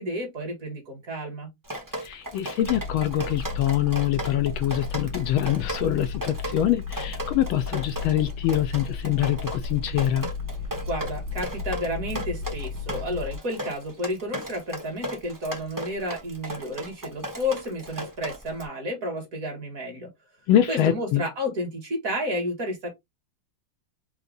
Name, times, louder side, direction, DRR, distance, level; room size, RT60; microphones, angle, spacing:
voice 1, 0.0-1.5 10.9-20.1 20.7-22.9, left 1 dB, 40° right, 1.8 m, -31 dB
Drip, 1.6-18.7, right 1 dB, 25° right, 0.4 m, -36 dB
voice 2, 2.0-10.3 20.5-21.2, left 12 dB, 75° left, 1.3 m, -24 dB
sound 1, 2.6-13.4, left 5 dB, 70° right, 1.6 m, -34 dB
4.7 x 2.1 x 3.8 m
omnidirectional pair, 2.4 m